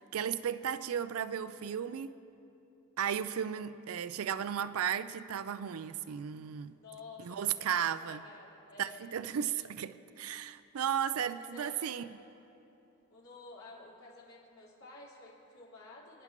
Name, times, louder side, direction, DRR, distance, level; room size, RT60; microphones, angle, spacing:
voice 1, 0.0-2.2 3.0-6.7 7.2-8.2 8.8-12.0, right 8 dB, 90° right, 0.4 m, -35 dB
voice 2, 6.7-9.1 11.1-12.1 13.1-16.2, left 3 dB, 80° left, 3.9 m, -52 dB
29.0 x 10.5 x 3.0 m
head